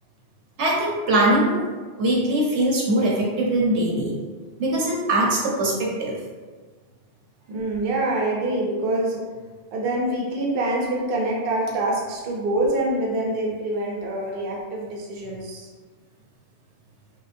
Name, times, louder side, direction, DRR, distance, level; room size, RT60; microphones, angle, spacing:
voice 1, 0.6-1.6 1.9-4.1 4.6-6.2, right 1 dB, 85° right, -4 dB, 1.1 m, -21 dB
voice 2, 7.5-9.2 9.7-15.7, right 1 dB, 60° right, -2 dB, 0.8 m, -25 dB
4.6 x 2.1 x 2.6 m, 1.3 s
omnidirectional pair, 1.1 m